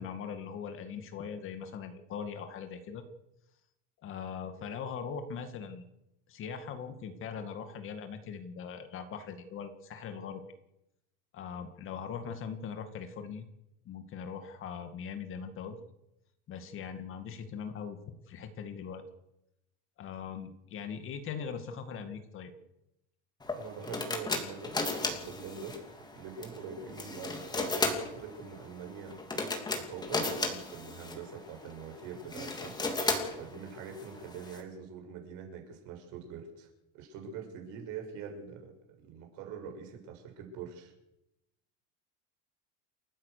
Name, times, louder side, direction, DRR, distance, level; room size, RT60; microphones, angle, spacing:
voice 1, 0.0-3.0 4.0-5.8 6.3-10.4 11.3-13.4 13.9-15.8 16.5-19.0 20.0-22.5, left 6 dB, 35° left, 8 dB, 2.1 m, -41 dB
sound 1, 23.4-34.6, left 3 dB, 10° left, 3.0 m, -36 dB
voice 2, 23.6-25.8 26.1-32.8 33.3-36.7 36.9-38.7 39.0-40.9, right 6 dB, 50° right, 3 dB, 7.0 m, -44 dB
29.0 x 14.5 x 6.8 m, 0.86 s
cardioid pair, 170°, 38 cm